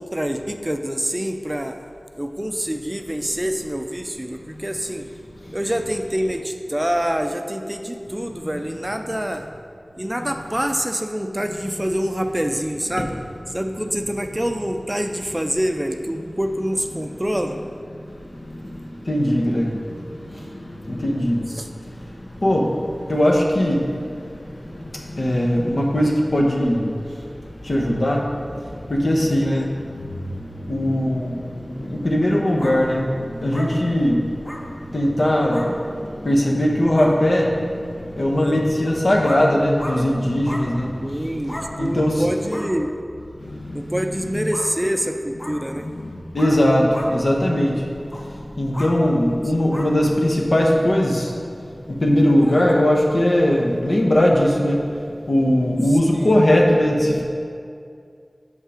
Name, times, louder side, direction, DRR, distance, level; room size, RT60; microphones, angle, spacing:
voice 1, 0.0-1.8 2.2-5.1 5.5-9.5 10.0-13.1 13.5-17.6 21.5-21.7 29.4-29.7 38.4-38.6 41.0-42.9 43.7-45.9 49.4-49.5 52.4-52.6 55.9-56.3, equal, 15° right, 6 dB, 0.4 m, -26 dB
voice 2, 19.1-19.8 20.9-21.4 22.4-22.7 23.1-23.8 25.2-26.8 27.7-28.2 28.9-29.7 30.7-31.4 31.8-33.1 33.4-34.2 34.9-35.7 36.2-37.6 38.2-40.9 41.8-42.2 43.7-44.4 46.3-47.7 48.6-51.2 52.0-54.8 55.3-57.2, left 1 dB, 70° left, -1 dB, 1.0 m, -19 dB
sound 1, 32.6-32.8 33.5-33.7 34.4-34.6 35.5-35.7 36.5-36.6 36.9-37.1 38.8-38.9 39.2-39.4 39.8-40.0 40.5-40.6 41.5-41.7 42.5-42.7 44.5-44.7 45.4-45.6 46.4-46.6 46.9-47.1 48.1-48.3 48.7-48.9 49.7-49.9 51.2-51.4, left 1 dB, 35° left, 0.9 m, -34 dB
6.7 x 5.5 x 4.9 m, 2.4 s
wide cardioid pair, 60°, 0 cm